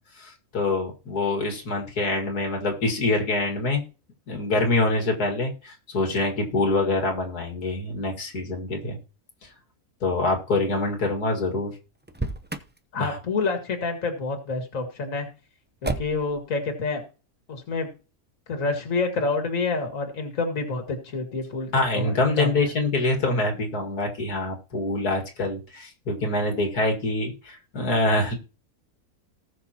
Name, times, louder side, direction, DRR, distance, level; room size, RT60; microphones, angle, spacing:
voice 1, 0.2-3.8 4.3-9.0 9.4-9.5 10.0-11.8 12.9-13.2 21.7-28.4, left 2 dB, 85° left, 2 dB, 2.6 m, -25 dB
Motor vehicle (road), 12.0-12.8 15.8-16.4, right 2 dB, 15° right, 0.4 m, -31 dB
voice 2, 12.9-15.3 15.8-17.0 17.5-17.9 18.5-22.6, left 3 dB, 60° left, 5 dB, 2.3 m, -28 dB
19.0 x 6.3 x 2.9 m, 0.34 s
omnidirectional pair, 1.6 m